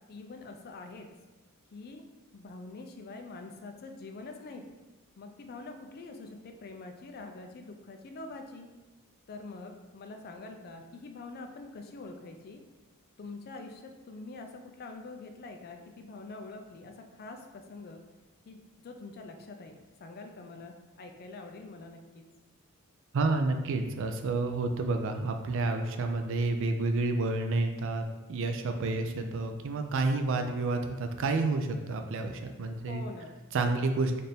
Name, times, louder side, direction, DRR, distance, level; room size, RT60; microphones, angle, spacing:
voice 1, 0.1-1.1 1.7-2.0 2.3-4.6 5.2-8.7 9.3-12.6 13.2-18.0 18.5-19.7 20.0-22.2 32.9-33.3, left 3 dB, 45° left, 5 dB, 0.4 m, -45 dB
voice 2, 23.1-33.0 33.5-34.2, right 3 dB, 60° right, 6 dB, 0.4 m, -30 dB
4.3 x 2.5 x 3.4 m, 1.1 s
head